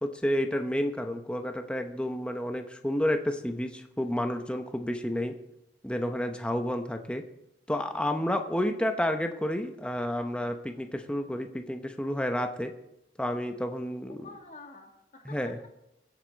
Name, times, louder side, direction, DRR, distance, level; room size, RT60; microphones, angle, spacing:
voice 1, 0.0-5.4 5.8-7.2 7.7-12.7 13.2-14.2 15.3-15.6, left 1 dB, 5° left, 5 dB, 0.9 m, -30 dB
voice 2, 14.1-15.7, left 2 dB, 45° left, 1 dB, 2.5 m, -48 dB
23.5 x 8.1 x 4.1 m, 0.83 s
head